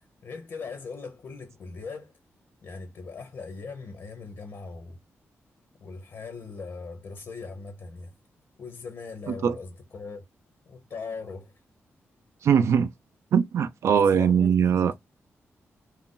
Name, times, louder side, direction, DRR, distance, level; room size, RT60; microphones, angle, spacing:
voice 1, 0.0-2.1 2.6-5.0 5.8-8.1 8.6-10.2 10.7-11.5 13.9-14.9, left 4 dB, 55° left, 0.6 m, -40 dB
voice 2, 12.4-12.9 13.3-14.9, right 7 dB, 75° right, 0.4 m, -21 dB
2.5 x 2.1 x 3.7 m
wide cardioid pair, 155°, 5 cm